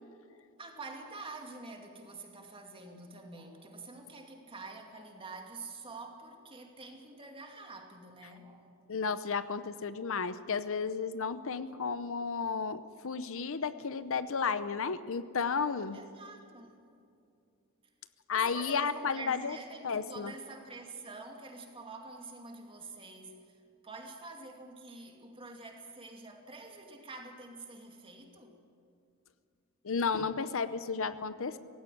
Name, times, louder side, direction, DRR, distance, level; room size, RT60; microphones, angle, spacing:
voice 1, 0.3-8.7 15.9-16.8 18.3-28.6, right 3 dB, 25° right, 3 dB, 2.4 m, -47 dB
voice 2, 8.9-16.0 18.3-19.6 19.8-20.3 29.8-31.6, left 5 dB, 65° left, 13 dB, 0.7 m, -33 dB
17.5 x 16.5 x 9.9 m, 2.5 s
head